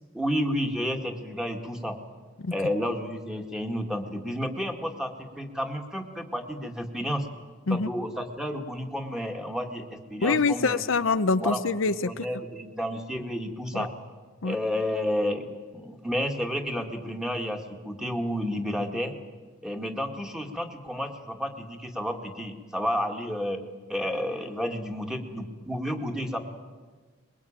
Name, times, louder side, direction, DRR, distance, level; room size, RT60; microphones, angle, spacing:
voice 1, 0.1-2.0 2.5-7.3 7.7-10.8 11.4-11.6 12.0-13.9 14.4-19.1 19.6-23.6 23.9-26.4, equal, 5° right, 4 dB, 2.1 m, -31 dB
voice 2, 10.2-12.2 13.7-13.9 14.4-14.6, left 4 dB, 70° left, 11 dB, 0.7 m, -25 dB
22.5 x 21.5 x 8.9 m, 1.4 s
head